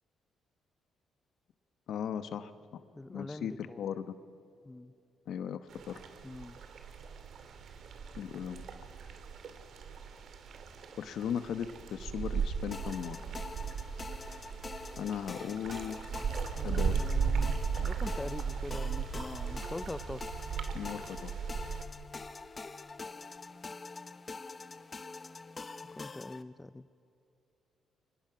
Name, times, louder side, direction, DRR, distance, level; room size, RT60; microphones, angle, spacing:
voice 1, 1.9-2.8 3.1-4.1 5.3-5.6 5.9-6.0 8.1-8.6 11.0-13.2 15.0-16.0 16.6-17.1 20.7-21.3, left 8 dB, 70° left, 11 dB, 1.1 m, -37 dB
voice 2, 2.9-3.8 4.7-4.9 6.2-6.6 16.5-20.3 26.0-26.9, left 2 dB, 15° left, 15 dB, 0.6 m, -43 dB
sound 1, 5.7-21.8, right 6 dB, 65° right, 2.4 m, -37 dB
sound 2, 12.7-26.4, left 3 dB, 30° left, 0.9 m, -45 dB
29.0 x 24.5 x 5.9 m, 2.7 s
cardioid pair, 90°, 0 cm